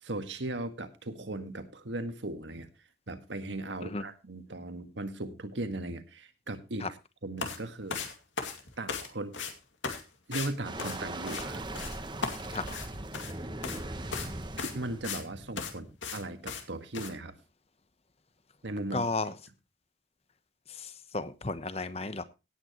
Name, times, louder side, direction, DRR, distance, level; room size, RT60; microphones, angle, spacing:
voice 1, 0.0-2.7 3.1-6.9 7.2-8.0 8.8-9.4 10.3-11.6 14.6-17.3 18.6-19.1, right 2 dB, 80° right, 8 dB, 1.7 m, -37 dB
sound 1, 7.4-7.6 7.9-9.1 9.3-9.5 9.8-10.0 10.3-10.5 10.8-11.5 11.7-12.0 12.2-13.3 13.6-13.8 14.1-14.3 14.6-15.2 15.6-15.7 16.0-16.2 16.5-16.6 16.9-17.1, left 5 dB, 85° left, 2.3 m, -36 dB
sound 2, 10.6-16.0, right 2 dB, 25° right, 1.2 m, -40 dB
voice 2, 18.9-19.3 20.7-22.2, left 3 dB, 35° left, 13 dB, 1.0 m, -34 dB
17.5 x 9.0 x 3.0 m, 0.27 s
head